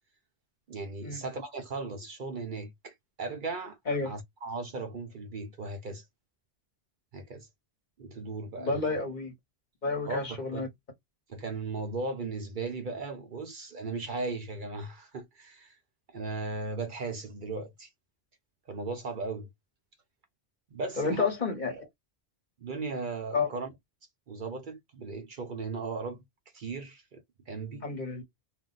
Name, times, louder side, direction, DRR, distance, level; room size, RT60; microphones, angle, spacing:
voice 1, 0.7-3.8 4.0-6.0 7.1-7.5 8.0-8.9 10.1-10.7 11.3-15.8 16.1-17.9 18.7-19.5 20.7-21.3 21.7-21.9 22.6-23.7 24.3-26.2 26.5-27.2 27.5-27.9, right 3 dB, 55° right, 0.8 m, -37 dB
voice 2, 8.6-9.3 9.8-10.7 21.0-21.7 23.3-23.5 27.8-28.2, left 4 dB, 45° left, 1.1 m, -30 dB
2.5 x 2.1 x 3.9 m
omnidirectional pair, 1.1 m